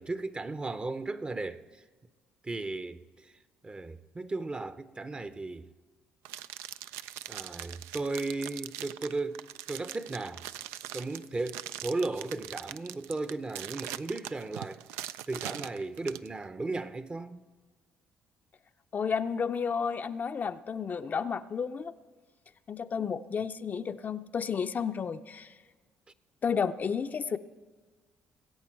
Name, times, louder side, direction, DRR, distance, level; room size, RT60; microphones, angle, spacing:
voice 1, 0.0-1.8 2.4-3.3 3.6-5.7 7.3-10.4 10.9-14.8 15.3-17.5, right 3 dB, 25° right, 0.7 m, -35 dB
sound 1, 6.2-16.3, right 13 dB, 80° right, 0.3 m, -41 dB
voice 2, 18.9-21.9 22.7-25.5 26.4-27.4, left 6 dB, 40° left, 0.5 m, -32 dB
20.5 x 8.6 x 4.5 m
supercardioid pair, 65°, 4 cm